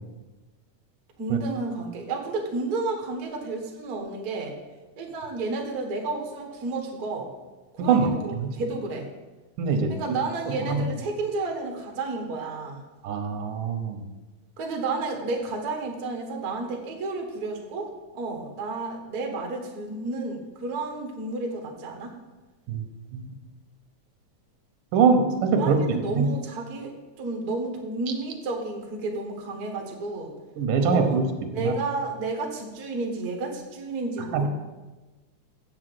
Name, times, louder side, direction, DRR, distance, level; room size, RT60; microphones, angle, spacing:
voice 1, 1.2-4.6 5.0-7.3 7.7-9.1 9.9-12.8 14.6-22.1 25.5-30.3 30.9-31.2 31.5-34.5, right 3 dB, 45° right, 2 dB, 1.3 m, -31 dB
voice 2, 7.8-8.1 8.4-8.5 9.6-9.9 10.7-10.8 13.0-14.0 22.7-22.8 23.1-23.3 24.9-25.8 26.2-26.3 30.6-31.3 31.6-31.7 34.3-34.5, right 5 dB, 90° right, 5 dB, 2.6 m, -22 dB
8.2 x 6.3 x 7.8 m, 1.2 s
omnidirectional pair, 3.6 m